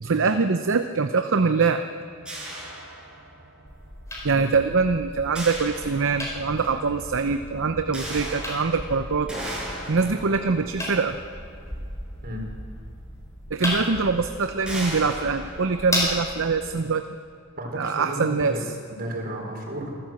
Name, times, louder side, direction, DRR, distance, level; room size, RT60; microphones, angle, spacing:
voice 1, 0.0-1.8 4.2-9.3 9.9-11.2 13.5-17.0 17.8-18.5, right 4 dB, 60° right, 8 dB, 0.7 m, -23 dB
sound 1, 1.9-15.7, right 1 dB, 35° left, 5.1 m, -50 dB
sound 2, 2.3-3.6 5.4-6.6 7.9-12.4 13.3-13.4 13.8-14.0 14.7-16.6, right 1 dB, 5° right, 5.9 m, -37 dB
sound 3, 3.7-16.7, left 1 dB, 15° left, 4.6 m, -35 dB
voice 2, 17.6-18.6 18.9-20.0, right 1 dB, 45° right, 0 dB, 4.6 m, -32 dB
27.5 x 13.0 x 7.7 m, 2.3 s
head